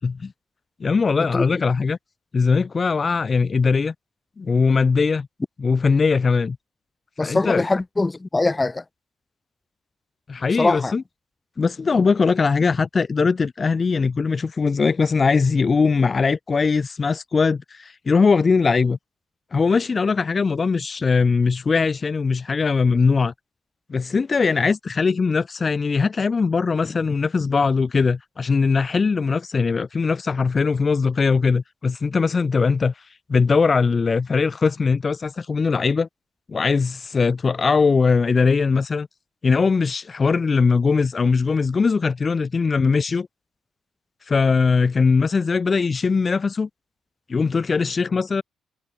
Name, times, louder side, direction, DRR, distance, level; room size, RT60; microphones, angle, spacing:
voice 1, 0.8-2.0 2.3-3.9 4.4-5.3 5.6-6.6 7.2-7.6 10.3-11.0 11.6-19.0 19.5-23.3 23.9-32.9 33.3-36.1 36.5-39.1 39.4-43.3 44.3-46.7 47.3-48.4, left 4 dB, 35° left, 2.6 m, -20 dB
voice 2, 7.2-8.8 10.6-10.9, left 2 dB, 20° left, 1.0 m, -22 dB
cardioid pair, 90°, 0 cm